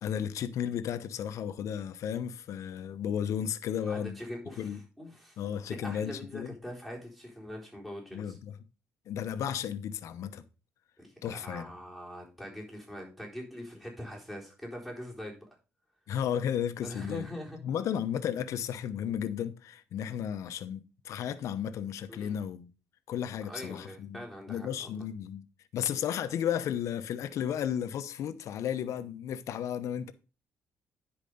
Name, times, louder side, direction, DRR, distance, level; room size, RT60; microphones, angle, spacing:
voice 1, 0.0-4.2 4.6-4.8 5.4-6.5 8.1-8.6 9.1-10.4 11.2-11.7 16.1-17.3 17.6-22.7 23.1-25.4 25.7-30.1, left 9 dB, 70° left, 0.9 m, -34 dB
voice 2, 3.8-5.4 5.7-8.4 11.0-15.5 16.8-17.6 22.1-22.3 23.5-25.0, left 1 dB, 5° right, 4.0 m, -43 dB
10.5 x 4.9 x 5.3 m
cardioid pair, 85°, 5 cm